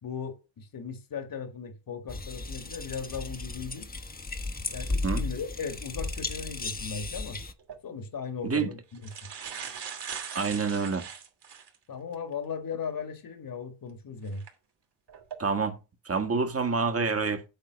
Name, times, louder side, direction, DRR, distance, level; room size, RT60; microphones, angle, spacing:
voice 1, 0.0-3.9 4.7-7.4 7.8-9.1 11.9-14.4, left 5 dB, 50° left, 2.1 m, -37 dB
sound 1, 2.1-7.5, left 3 dB, 20° left, 1.3 m, -35 dB
sound 2, 7.6-7.8 8.6-8.7 8.9-11.8 12.3-12.4 14.3-14.5 15.1-15.4, right 7 dB, 60° right, 2.8 m, -40 dB
voice 2, 10.3-11.0 15.4-15.8 16.0-17.4, right 4 dB, 30° right, 1.7 m, -27 dB
8.8 x 3.9 x 6.3 m
cardioid pair, 80°, 45 cm